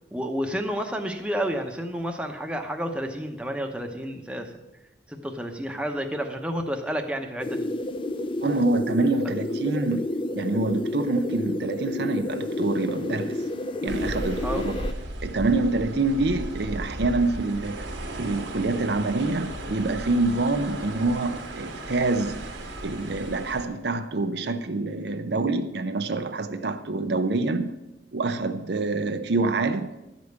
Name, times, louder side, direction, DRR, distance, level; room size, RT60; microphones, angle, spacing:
voice 1, 0.1-4.5 5.1-7.7 14.4-14.6, equal, 5° right, 0.8 m, -30 dB
sound 1, 7.4-14.9, left 1 dB, 30° left, 0.5 m, -30 dB
voice 2, 8.4-13.4 13.8-14.9 15.2-22.4 22.8-27.7 28.1-29.9, right 2 dB, 60° right, 0.6 m, -26 dB
sound 2, 13.9-23.7, right 1 dB, 85° right, 1.6 m, -35 dB
11.5 x 5.2 x 8.0 m
head